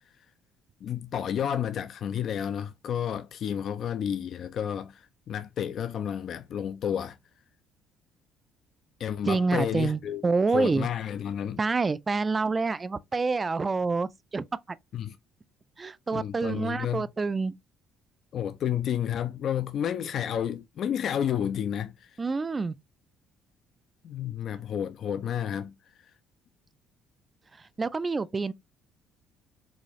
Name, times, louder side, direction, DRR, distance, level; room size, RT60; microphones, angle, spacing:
voice 1, 0.8-7.2 9.0-10.2 10.5-11.6 14.9-15.2 16.1-17.1 18.3-22.2 24.0-25.7, left 9 dB, 55° left, 0.3 m, -31 dB
voice 2, 9.2-10.9 11.6-14.4 15.8-17.5 22.2-22.8 27.6-28.5, right 4 dB, 25° right, 0.3 m, -27 dB
4.1 x 2.3 x 3.0 m
cardioid pair, 95°, 0 cm